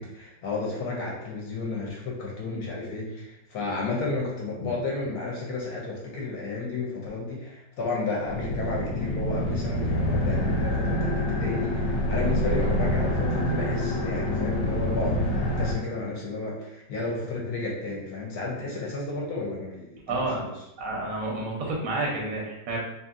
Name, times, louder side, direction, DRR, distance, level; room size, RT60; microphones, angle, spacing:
voice 1, 0.0-20.5, left 3 dB, 70° left, -3 dB, 1.0 m, -32 dB
sound 1, 8.3-15.7, left 1 dB, 85° left, 1.2 m, -26 dB
voice 2, 20.1-20.5 20.8-22.8, right 2 dB, 65° right, -2 dB, 0.9 m, -29 dB
2.7 x 2.6 x 2.4 m, 0.90 s
omnidirectional pair, 1.9 m